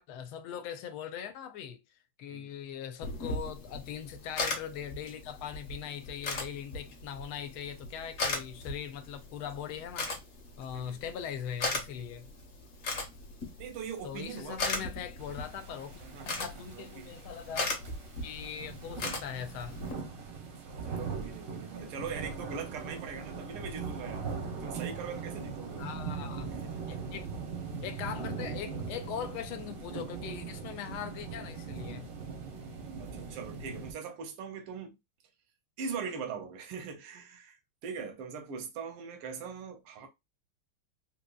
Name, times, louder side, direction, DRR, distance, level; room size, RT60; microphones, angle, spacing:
voice 1, 0.1-1.8 2.2-10.1 10.6-12.3 14.0-16.0 16.4-17.8 18.2-19.8 25.8-26.5 26.9-27.3 27.8-32.1, left 9 dB, 80° left, 1.4 m, -40 dB
sound 1, 3.0-19.9, left 3 dB, 50° left, 1.1 m, -38 dB
voice 2, 13.6-14.9 16.0-16.4 16.7-17.2 20.9-24.3 24.6-25.9 26.5-27.0 33.0-35.0 35.8-37.6 37.8-40.1, right 6 dB, 85° right, 1.6 m, -41 dB
sound 2, 15.2-33.9, right 5 dB, 60° right, 0.9 m, -40 dB
3.9 x 2.8 x 2.2 m
omnidirectional pair, 2.4 m